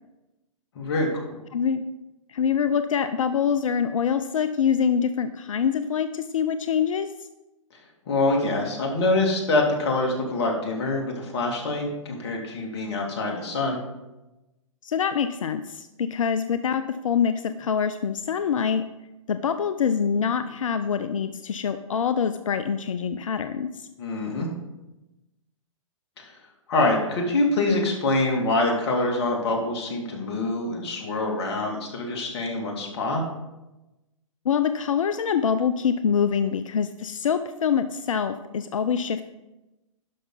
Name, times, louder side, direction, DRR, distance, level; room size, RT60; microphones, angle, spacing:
voice 1, 0.8-1.4 8.1-13.8 24.0-24.5 26.2-26.3 26.7-33.2, left 2 dB, 50° left, 0 dB, 2.4 m, -25 dB
voice 2, 1.5-1.8 2.3-7.1 14.8-18.8 19.3-23.9 34.4-39.2, left 7 dB, 70° left, 10 dB, 0.5 m, -25 dB
11.5 x 5.7 x 4.0 m, 1.0 s
hypercardioid pair, 125°, 17 cm